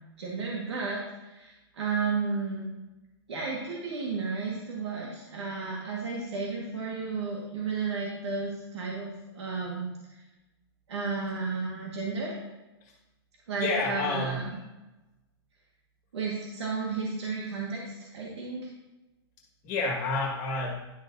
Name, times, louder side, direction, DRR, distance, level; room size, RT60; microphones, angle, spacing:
voice 1, 0.2-2.7 3.3-9.9 10.9-12.3 13.5-14.5 16.1-18.7, right 4 dB, 90° right, -3 dB, 1.7 m, -33 dB
voice 2, 13.6-14.4 19.6-20.8, left 3 dB, 30° left, -1 dB, 1.8 m, -29 dB
11.5 x 6.4 x 2.7 m, 1.0 s
hypercardioid pair, 145°, 14 cm